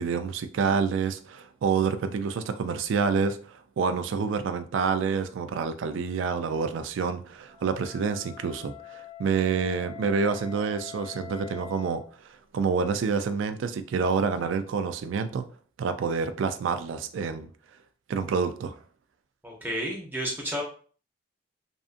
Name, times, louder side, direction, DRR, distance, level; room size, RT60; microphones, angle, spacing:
voice 1, 0.0-12.0 12.5-15.5 15.8-17.5 18.1-18.8, right 5 dB, 75° right, 0.3 m, -28 dB
Wind instrument woodwind instrument, 7.4-12.1, left 9 dB, 30° left, 0.6 m, -44 dB
voice 2, 19.4-20.6, equal, 10° right, 0.7 m, -31 dB
2.5 x 2.4 x 2.4 m
head